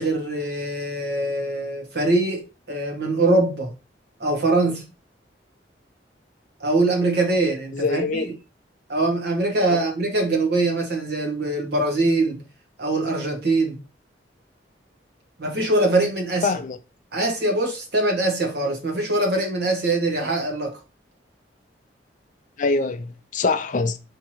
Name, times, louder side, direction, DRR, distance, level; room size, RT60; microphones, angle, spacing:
voice 1, 0.0-3.7 4.2-4.9 6.6-8.3 8.9-12.4 12.8-13.8 15.4-16.5 17.1-20.8, right 2 dB, 65° right, 1.3 m, -23 dB
voice 2, 7.7-8.3 9.7-9.8 16.4-16.8 22.6-24.0, left 3 dB, 45° left, 0.4 m, -24 dB
3.5 x 3.0 x 4.5 m
head